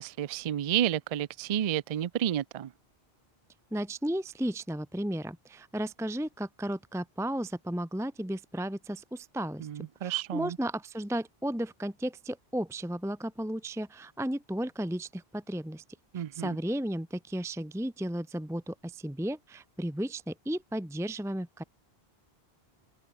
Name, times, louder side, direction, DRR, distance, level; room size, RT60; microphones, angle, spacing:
voice 1, 0.0-2.7 9.6-10.6 16.1-16.6, right 10 dB, 50° right, 0.4 m, -31 dB
voice 2, 3.7-15.8 16.1-21.6, right 1 dB, 5° right, 0.8 m, -34 dB
open air
omnidirectional pair, 1.0 m